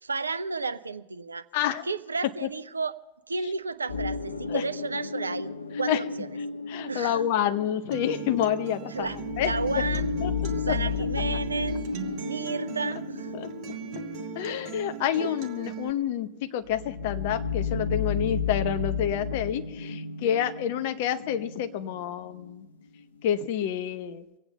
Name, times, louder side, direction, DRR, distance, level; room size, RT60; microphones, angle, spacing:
voice 1, 0.0-1.4 1.8-2.9 3.3-5.5 5.8-6.3 6.9-7.2 8.9-10.1 10.5-11.8 12.2-13.5 15.2-15.3, right 4 dB, 75° right, 13 dB, 0.6 m, -32 dB
voice 2, 1.5-1.8 2.4-2.5 4.5-4.6 5.9-6.0 6.7-9.5 10.2-10.8 13.3-13.5 14.3-22.7 23.2-24.2, left 10 dB, 50° left, 9 dB, 0.9 m, -28 dB
sound 1, 3.9-22.5 22.9-23.0, left 5 dB, 75° left, 0.7 m, -33 dB
Acoustic guitar, 7.9-15.9, right 8 dB, 40° right, 1.9 m, -39 dB
24.5 x 8.9 x 5.5 m, 1.0 s
figure-of-eight pair, 90°, 0 cm